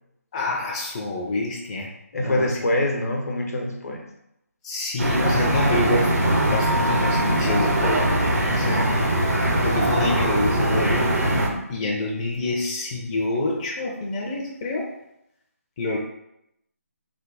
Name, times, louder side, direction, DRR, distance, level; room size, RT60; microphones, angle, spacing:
voice 1, 0.3-1.9 2.2-2.6 4.6-8.2 8.5-8.9 9.6-11.2 11.7-14.9 15.8-16.0, left 2 dB, 25° left, -3 dB, 0.4 m, -27 dB
voice 2, 2.1-4.0 8.5-9.0 10.0-10.2, left 1 dB, 70° left, 1 dB, 0.9 m, -25 dB
sound 1, 5.0-11.5, right 1 dB, 90° right, 0.8 m, -21 dB
3.3 x 2.1 x 3.9 m, 0.80 s
figure-of-eight pair, 155°, 9 cm